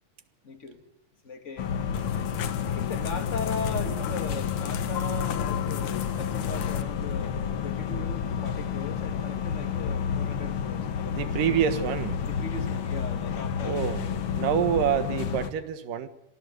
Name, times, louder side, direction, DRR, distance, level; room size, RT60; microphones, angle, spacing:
voice 1, 0.4-0.8 1.2-1.7 2.6-7.4 7.6-11.6 12.3-13.9, left 3 dB, 25° left, 7 dB, 2.2 m, -38 dB
sound 1, 1.6-15.5, left 7 dB, 55° left, 1.5 m, -30 dB
sound 2, 1.9-6.8, left 9 dB, 70° left, 2.7 m, -34 dB
voice 2, 11.1-12.2 13.6-14.0 14.3-16.1, right 9 dB, 85° right, 12 dB, 3.2 m, -27 dB
26.0 x 19.0 x 8.2 m, 0.84 s
omnidirectional pair, 3.7 m